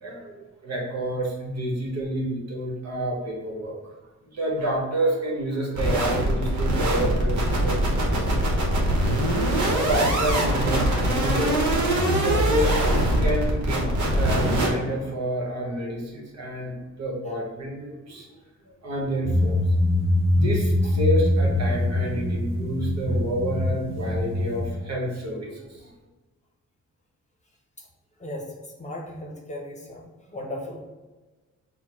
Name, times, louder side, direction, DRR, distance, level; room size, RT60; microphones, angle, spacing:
voice 1, 0.0-0.4 0.6-3.9 4.3-8.3 8.8-8.9 9.2-11.8 12.2-18.3 18.8-19.7 20.3-25.9, right 1 dB, 60° right, -2 dB, 1.3 m, -29 dB
sound 1, 5.7-14.7, right 1 dB, 80° right, 1.0 m, -23 dB
sound 2, 19.2-24.7, left 1 dB, 45° right, 0.8 m, -23 dB
voice 2, 28.2-30.8, left 1 dB, 25° left, -1 dB, 0.8 m, -37 dB
4.3 x 2.2 x 4.4 m, 1.2 s
cardioid pair, 110°, 29 cm